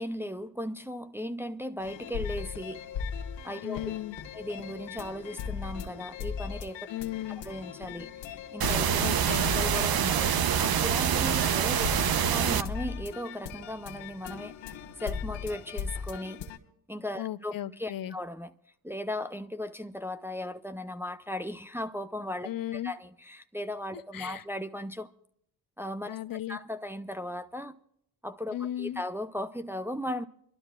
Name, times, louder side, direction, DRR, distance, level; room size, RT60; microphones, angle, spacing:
voice 1, 0.0-2.8 3.4-3.9 4.3-6.9 7.3-8.9 9.5-11.9 12.3-16.4 16.9-18.5 18.8-25.1 25.8-26.2 26.5-27.8 28.2-30.3, left 1 dB, 5° right, 0.6 m, -37 dB
sound 1, 1.8-16.6, left 7 dB, 75° left, 1.4 m, -38 dB
voice 2, 3.6-4.2 6.9-7.4 9.0-9.5 17.2-18.1 22.5-22.9 23.9-24.4 26.1-26.6 28.5-29.0, left 13 dB, 50° left, 0.6 m, -35 dB
sound 2, 8.6-12.6, right 8 dB, 50° right, 0.8 m, -26 dB
29.5 x 12.5 x 2.4 m
supercardioid pair, 55°, 46 cm